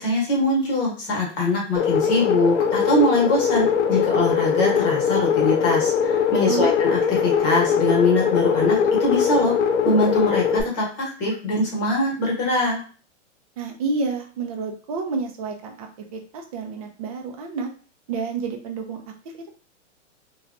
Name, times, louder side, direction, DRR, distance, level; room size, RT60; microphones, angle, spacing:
voice 1, 0.0-9.5 9.8-12.8, left 1 dB, 35° left, -2 dB, 1.1 m, -22 dB
sound 1, 1.8-10.6, left 7 dB, 70° left, 0.5 m, -21 dB
voice 2, 6.5-6.8 13.6-17.7 18.1-19.0, right 4 dB, 30° right, 3 dB, 0.4 m, -29 dB
2.8 x 2.3 x 2.4 m, 0.40 s
hypercardioid pair, 155°, 36 cm